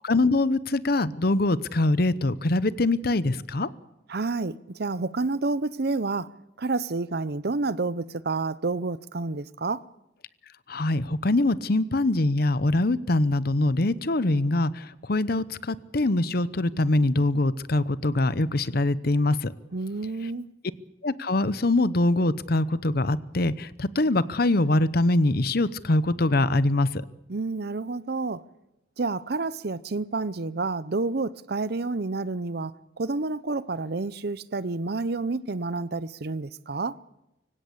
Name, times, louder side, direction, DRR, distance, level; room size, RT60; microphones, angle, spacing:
voice 1, 0.0-3.7 10.7-19.5 21.0-26.9, left 2 dB, 55° left, 0.8 m, -23 dB
voice 2, 4.1-6.3 6.6-9.8 19.7-20.5 27.3-28.4 29.0-32.7 33.0-37.0, right 3 dB, 55° right, 0.7 m, -29 dB
24.5 x 16.5 x 8.4 m
head